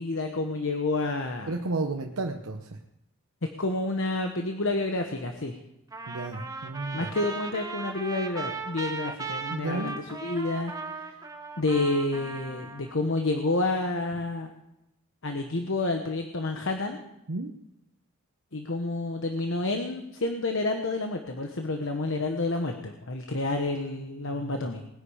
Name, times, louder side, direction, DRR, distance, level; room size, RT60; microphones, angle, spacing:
voice 1, 0.0-1.5 3.6-5.6 6.9-10.7 11.0-11.2 11.6-14.5 15.2-17.0 18.5-24.8, left 2 dB, 60° left, 5 dB, 1.1 m, -29 dB
voice 2, 1.5-2.7 6.1-7.1 9.5-9.9 17.3-17.5 24.3-24.7, right 2 dB, 85° right, 3 dB, 0.9 m, -32 dB
Trumpet, 5.9-12.9, right 3 dB, 15° right, 1.1 m, -37 dB
20.0 x 10.0 x 5.0 m, 0.87 s
head